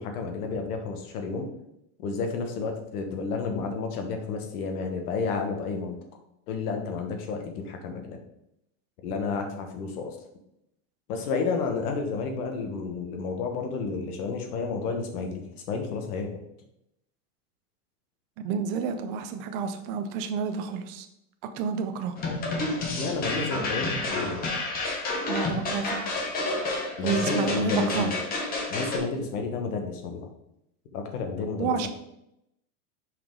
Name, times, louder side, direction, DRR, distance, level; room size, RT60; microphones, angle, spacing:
voice 1, 0.0-1.5 2.0-6.0 6.5-8.2 9.0-10.2 11.1-16.4 22.8-24.4 27.0-28.1 28.7-30.3 30.9-31.9, left 4 dB, 75° left, 4 dB, 1.5 m, -31 dB
voice 2, 18.4-21.1 21.6-22.2 25.3-26.1 27.0-28.1 31.6-31.9, right 6 dB, 40° right, 8 dB, 0.6 m, -29 dB
sound 1, 22.2-29.0, left 2 dB, 20° left, 1.0 m, -30 dB
5.8 x 4.8 x 3.8 m, 0.81 s
supercardioid pair, 165°, 45 cm